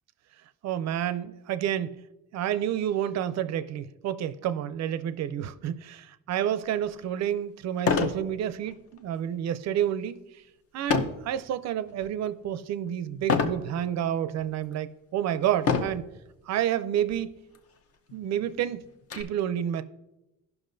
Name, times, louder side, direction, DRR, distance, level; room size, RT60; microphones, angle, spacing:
voice 1, 0.6-2.0 2.3-6.0 6.3-10.2 10.7-16.0 16.5-17.3 18.1-18.9 19.1-19.8, right 10 dB, 55° right, 0.4 m, -29 dB
sound 1, 6.8-6.9 7.8-8.2 8.7-9.0 10.9-11.3 11.9-12.3 13.3-13.6 14.4-14.5 15.6-16.1 17.1-17.2 17.5-17.6 18.1-19.2, left 5 dB, 45° left, 0.7 m, -26 dB
17.0 x 5.9 x 2.6 m
cardioid pair, 180°, 33 cm